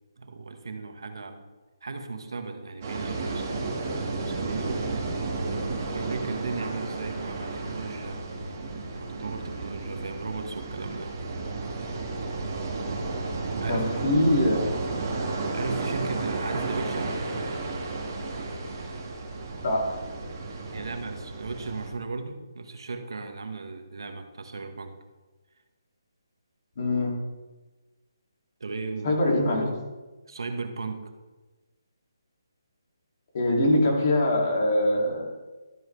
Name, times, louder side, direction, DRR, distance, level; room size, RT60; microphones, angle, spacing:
voice 1, 0.2-1.4 1.8-5.4 5.8-8.3 8.9-11.1 13.6-13.9 15.5-17.2 20.7-25.0 28.6-29.2 30.3-31.1, right 4 dB, 75° right, 6 dB, 1.3 m, -36 dB
sound 1, 2.8-21.9, right 3 dB, 30° right, 1.7 m, -32 dB
voice 2, 13.7-14.9 19.6-20.0 26.8-27.2 29.0-29.7 33.3-35.3, left 1 dB, 40° left, -2 dB, 2.4 m, -23 dB
12.5 x 7.2 x 3.3 m, 1.2 s
hypercardioid pair, 175°, 2 cm